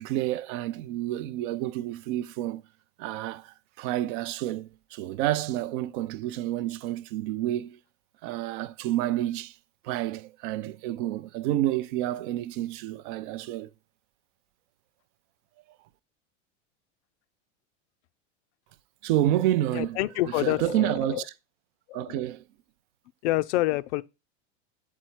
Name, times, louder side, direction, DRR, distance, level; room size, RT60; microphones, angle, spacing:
voice 1, 0.0-2.6 3.0-7.8 8.2-9.6 9.8-13.7 19.0-20.0 20.4-21.2 21.9-22.4, right 14 dB, 45° right, 0.4 m, -29 dB
voice 2, 19.7-21.2 21.9-22.1 23.2-24.0, left 17 dB, 70° left, 0.5 m, -27 dB
7.1 x 4.5 x 4.4 m
supercardioid pair, 160°, 36 cm